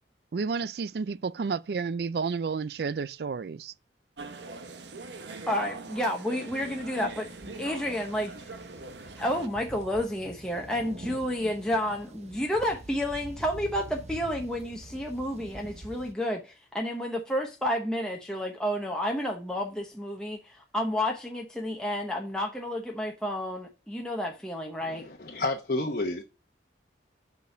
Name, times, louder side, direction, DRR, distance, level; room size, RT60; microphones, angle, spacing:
voice 1, 0.3-3.7, right 5 dB, 60° right, 0.4 m, -31 dB
sound 1, 4.2-9.5, right 3 dB, 80° right, 1.0 m, -42 dB
voice 2, 5.5-7.3 7.5-8.3 9.2-25.0, equal, 5° left, 0.9 m, -30 dB
sound 2, 6.5-16.1, right 2 dB, 40° right, 0.9 m, -46 dB
voice 3, 24.8-26.2, left 2 dB, 50° left, 1.0 m, -30 dB
6.8 x 5.2 x 5.0 m
head